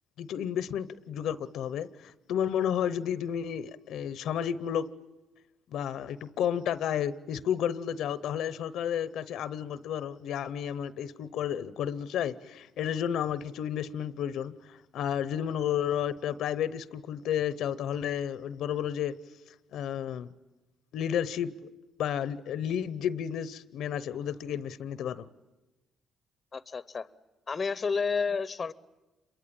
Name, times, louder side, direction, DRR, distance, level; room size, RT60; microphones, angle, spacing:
voice 1, 0.2-4.9 5.7-19.1 19.7-20.3 20.9-21.7 22.0-25.2, left 9 dB, 80° left, 0.8 m, -32 dB
voice 2, 26.5-27.1 27.5-28.7, left 5 dB, 35° left, 0.8 m, -30 dB
27.5 x 23.0 x 8.8 m
cardioid pair, 90°, 0 cm